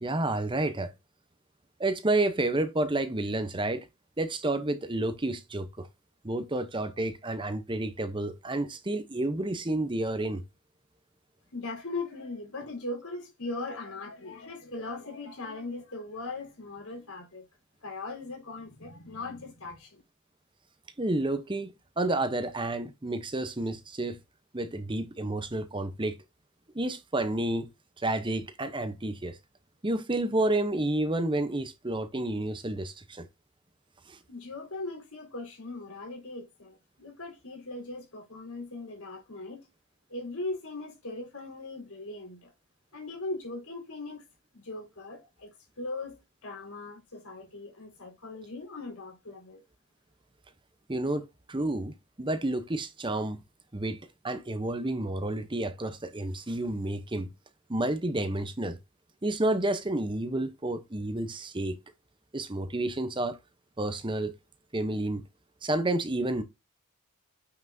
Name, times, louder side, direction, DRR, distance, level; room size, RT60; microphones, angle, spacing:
voice 1, 0.0-0.9 1.8-3.9 4.2-5.9 6.2-10.4 21.0-21.7 22.0-24.2 24.5-26.2 26.7-27.7 28.0-29.4 29.8-33.3 34.1-34.2 50.9-53.4 53.7-57.3 57.7-58.8 59.2-61.8 62.3-63.4 63.8-64.3 64.7-65.2 65.6-66.4, right 2 dB, 20° right, 0.8 m, -30 dB
voice 2, 11.5-17.5 17.8-20.0 34.3-39.7 40.1-42.5 42.9-44.2 44.5-49.6, left 2 dB, 80° left, 4.0 m, -39 dB
9.2 x 5.8 x 2.7 m
head